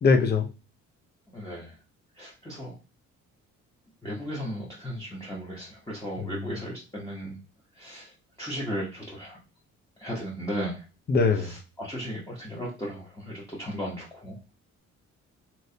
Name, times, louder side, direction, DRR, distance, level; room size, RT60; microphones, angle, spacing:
voice 1, 0.0-0.5 6.2-6.6 11.1-11.5, left 4 dB, 35° left, 6 dB, 0.7 m, -23 dB
voice 2, 1.3-1.7 2.2-2.8 4.0-7.4 7.7-8.1 8.4-9.4 10.0-10.8 11.4-14.3, equal, 10° left, -5 dB, 1.0 m, -36 dB
3.2 x 3.0 x 2.8 m, 0.31 s
cardioid pair, 90°, 30 cm